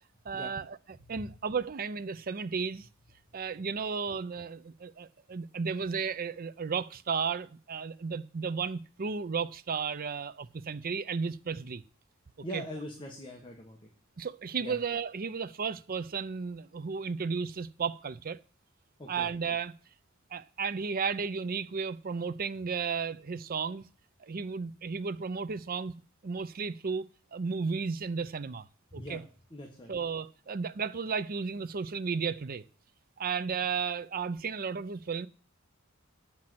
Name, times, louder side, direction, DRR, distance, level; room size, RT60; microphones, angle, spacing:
voice 1, 0.3-0.8 1.1-2.9 3.3-11.8 12.5-12.6 14.2-18.4 19.1-19.7 20.3-23.9 24.2-25.9 26.2-28.6 28.9-29.2 29.9-32.6 33.2-35.3, right 5 dB, 45° right, 0.5 m, -34 dB
voice 2, 12.4-13.9 14.6-14.8 19.0-19.3 28.9-29.2 29.5-29.9, equal, 25° left, 1.5 m, -42 dB
8.7 x 5.9 x 7.8 m
head